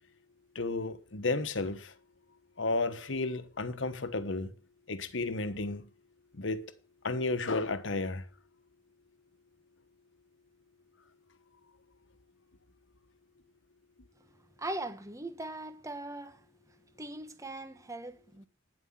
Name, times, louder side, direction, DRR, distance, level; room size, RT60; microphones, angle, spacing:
voice 1, 0.5-1.9 2.6-4.5 4.9-5.9 6.3-6.7 7.0-8.3, left 3 dB, 75° left, 1.2 m, -32 dB
voice 2, 14.6-16.4 17.0-18.5, right 2 dB, 15° right, 1.3 m, -40 dB
9.9 x 7.8 x 7.4 m
head